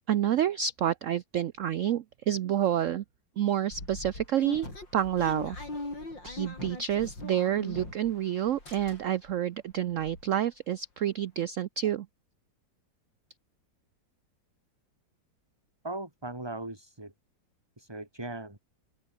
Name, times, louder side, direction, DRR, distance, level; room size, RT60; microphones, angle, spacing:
voice 1, 0.0-3.0 3.4-4.7 4.9-5.6 6.2-12.1, right 10 dB, 80° right, 0.7 m, -28 dB
sound 1, 3.7-8.2 8.5-9.3 9.7-9.8 10.0-10.2, left 2 dB, 75° left, 8.1 m, -40 dB
voice 2, 15.8-17.1 17.8-18.6, right 2 dB, 15° right, 3.0 m, -38 dB
open air
omnidirectional pair, 2.0 m